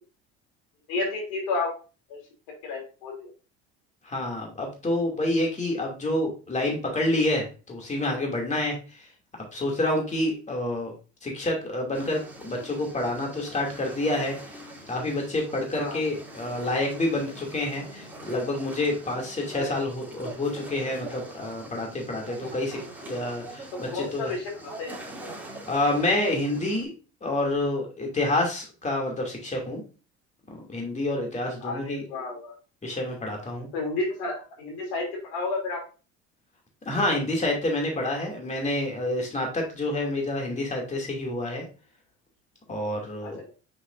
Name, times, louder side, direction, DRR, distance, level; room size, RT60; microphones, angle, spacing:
voice 1, 0.9-1.7 2.1-2.2 2.6-3.3 15.7-16.1 19.5-19.9 23.9-25.0 31.6-32.5 33.7-35.8 43.2-43.5, left 3 dB, 85° left, 1 dB, 3.1 m, -31 dB
voice 2, 4.0-8.8 9.5-10.9 11.2-14.4 14.9-22.8 23.1-24.3 25.7-26.9 27.2-29.8 30.7-32.0 32.8-33.7 36.9-41.6 42.7-43.4, left 1 dB, 20° left, 0 dB, 2.6 m, -28 dB
sound 1, 11.9-26.8, right 1 dB, 5° right, 2.9 m, -43 dB
6.6 x 5.8 x 2.6 m, 0.34 s
supercardioid pair, 95°, 32 cm